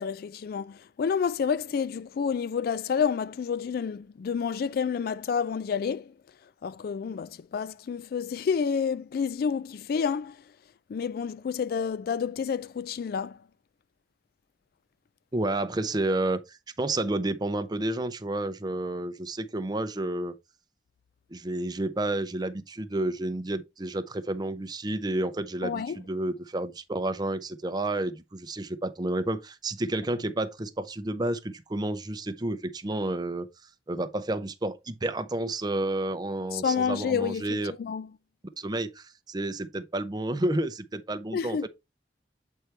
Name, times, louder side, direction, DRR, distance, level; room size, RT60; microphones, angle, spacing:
voice 1, 0.0-6.1 6.6-10.4 10.9-13.4 25.6-26.0 36.5-38.1 41.3-41.7, left 6 dB, 55° left, 0.3 m, -29 dB
voice 2, 15.3-20.3 21.3-33.5 33.9-37.7 38.6-41.6, right 1 dB, 20° right, 0.6 m, -30 dB
8.1 x 4.5 x 3.3 m
head